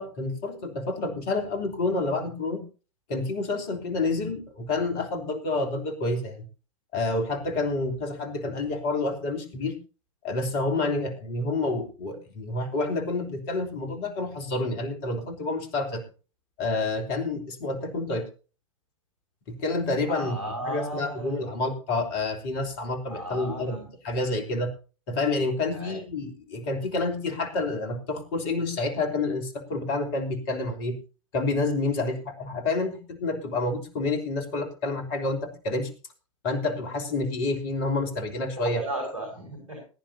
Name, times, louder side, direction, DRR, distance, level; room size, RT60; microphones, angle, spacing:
voice 1, 0.0-2.6 3.1-6.4 6.9-9.8 10.2-16.0 16.6-18.2 19.6-24.7 25.1-31.0 31.3-35.9 36.4-38.8, left 2 dB, 50° left, 6 dB, 3.3 m, -28 dB
voice 2, 20.1-21.4 23.1-23.8 25.7-25.9 38.6-39.8, right 1 dB, 80° right, 2 dB, 5.4 m, -35 dB
21.0 x 10.5 x 2.7 m, 0.35 s
figure-of-eight pair, 90°, 17 cm